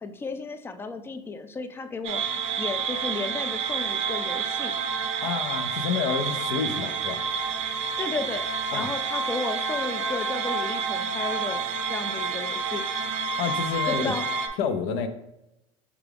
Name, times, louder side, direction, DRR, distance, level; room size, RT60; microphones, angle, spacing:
voice 1, 0.0-2.2 2.6-4.7 8.0-12.8 13.9-14.3, left 4 dB, 15° left, 9 dB, 0.3 m, -33 dB
sound 1, 2.0-14.5, right 5 dB, 50° right, 0.5 m, -29 dB
voice 2, 5.2-7.3 8.7-8.9 13.4-14.1 14.6-15.1, left 6 dB, 75° left, 9 dB, 0.5 m, -29 dB
4.8 x 2.3 x 3.3 m, 0.88 s
supercardioid pair, 120°, 15 cm